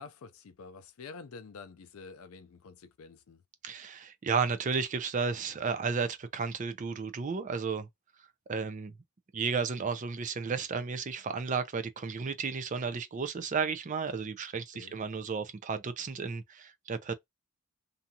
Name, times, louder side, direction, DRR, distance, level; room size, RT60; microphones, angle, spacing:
voice 1, 0.0-3.4 14.7-15.0, left 4 dB, 70° left, 0.4 m, -48 dB
voice 2, 3.6-7.9 8.5-8.9 9.3-17.1, right 5 dB, 35° right, 0.4 m, -33 dB
2.6 x 2.3 x 2.7 m
head